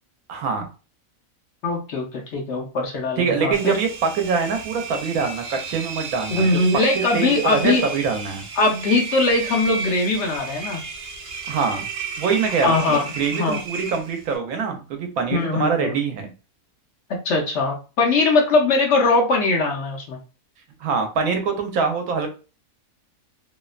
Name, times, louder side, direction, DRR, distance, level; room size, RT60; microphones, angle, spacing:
voice 1, 0.3-0.7 3.2-6.5 7.1-8.4 11.5-11.9 12.2-16.3 20.8-22.3, right 5 dB, 90° right, 5 dB, 1.1 m, -24 dB
voice 2, 1.6-3.8 6.3-7.9 8.6-10.8 12.6-13.0 13.3-13.6 15.3-16.0 17.1-20.2, left 3 dB, 65° left, 2 dB, 0.8 m, -21 dB
Engine, 3.5-14.4, right 4 dB, 70° right, 0.9 m, -33 dB
2.8 x 2.0 x 2.4 m, 0.33 s
omnidirectional pair, 1.5 m